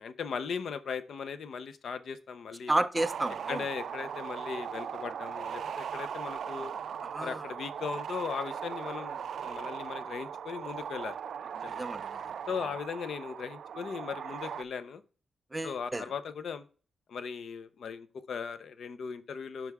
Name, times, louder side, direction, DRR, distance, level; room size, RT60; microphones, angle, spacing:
voice 1, 0.0-2.7 3.5-6.7 7.2-11.2 11.6-11.8 12.5-15.0 15.6-16.6 17.1-19.7, left 6 dB, 65° left, 0.6 m, -38 dB
voice 2, 2.7-3.6 7.0-7.4 11.8-12.2 15.5-16.0, right 2 dB, 10° right, 0.5 m, -31 dB
sound 1, 3.0-14.6, right 8 dB, 65° right, 0.3 m, -39 dB
8.2 x 6.0 x 3.4 m
wide cardioid pair, 155°, 0 cm